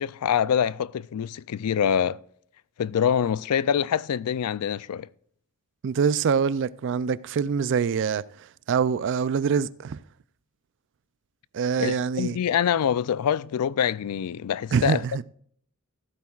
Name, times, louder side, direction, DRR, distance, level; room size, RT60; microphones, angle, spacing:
voice 1, 0.0-2.2 2.8-5.1 11.8-15.0, left 8 dB, 90° left, 0.4 m, -25 dB
voice 2, 5.8-8.2 8.7-10.0 11.5-12.4 14.7-15.2, right 6 dB, 55° right, 0.4 m, -24 dB
14.5 x 13.0 x 2.4 m
head